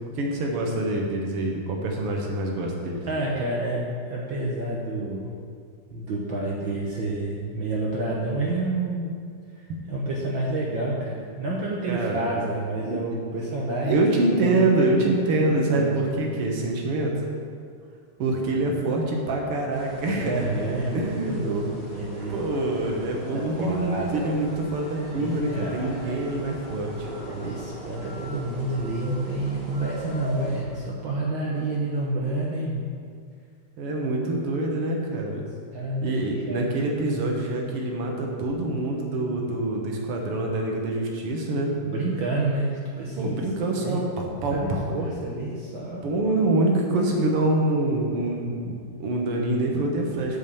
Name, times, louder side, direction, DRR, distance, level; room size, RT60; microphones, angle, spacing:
voice 1, 0.2-3.0 9.7-9.8 11.9-12.3 12.8-13.0 13.8-17.1 18.2-20.4 20.9-21.5 22.3-27.1 31.4-31.7 33.8-35.4 36.0-41.7 43.2-44.8 46.0-50.4, right 2 dB, 60° right, 0 dB, 1.8 m, -25 dB
voice 2, 3.0-5.3 5.9-9.1 9.5-14.0 14.4-14.7 15.2-16.3 20.1-22.4 23.2-24.2 25.1-26.2 27.2-32.9 35.7-36.7 41.8-43.4 43.8-44.0 44.5-46.0 46.9-47.4, right 2 dB, 75° right, -4 dB, 1.1 m, -29 dB
sound 1, 19.7-30.6, right 1 dB, 25° right, 1.0 m, -40 dB
8.9 x 5.0 x 7.0 m, 2.1 s
omnidirectional pair, 3.5 m